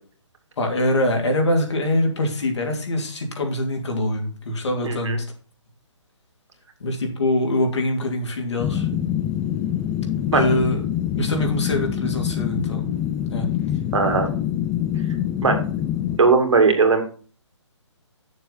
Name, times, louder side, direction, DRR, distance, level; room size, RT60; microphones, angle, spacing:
voice 1, 0.6-5.2 6.8-8.9 10.3-10.8 11.1-12.9 13.3-13.5, left 1 dB, 65° left, 2 dB, 2.7 m, -23 dB
voice 2, 4.8-5.2 10.3-10.4 13.9-14.3 15.4-15.6 16.2-17.0, right 4 dB, 75° right, 4 dB, 2.3 m, -18 dB
sound 1, 8.6-16.2, left 10 dB, 10° left, 0.4 m, -25 dB
7.7 x 6.9 x 4.0 m, 0.40 s
hypercardioid pair, 150°, 16 cm